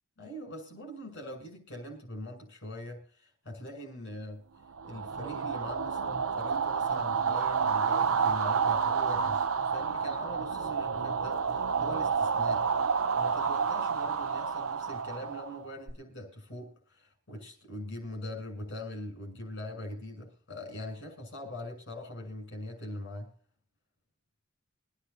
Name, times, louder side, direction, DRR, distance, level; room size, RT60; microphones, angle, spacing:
voice 1, 0.2-4.4 4.8-12.7 13.2-23.3, left 1 dB, 60° left, 7.1 m, -42 dB
sound 1, 4.8-15.9, right 6 dB, 80° right, 0.8 m, -29 dB
25.0 x 10.0 x 2.8 m
head